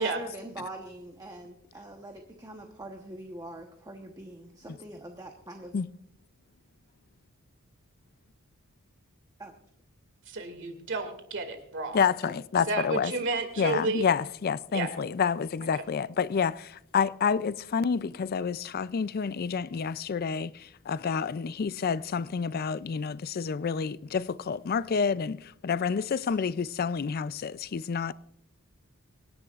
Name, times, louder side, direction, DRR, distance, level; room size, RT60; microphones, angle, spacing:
voice 1, 0.0-5.7 9.4-9.5 12.2-12.3 26.2-26.3, right 1 dB, 15° right, 1.0 m, -43 dB
voice 2, 10.3-12.0 12.7-14.1 14.7-14.9 15.7-15.8, right 3 dB, 55° right, 2.2 m, -31 dB
voice 3, 11.9-13.1 13.6-28.1, left 6 dB, 45° left, 0.4 m, -29 dB
26.0 x 10.5 x 2.5 m
head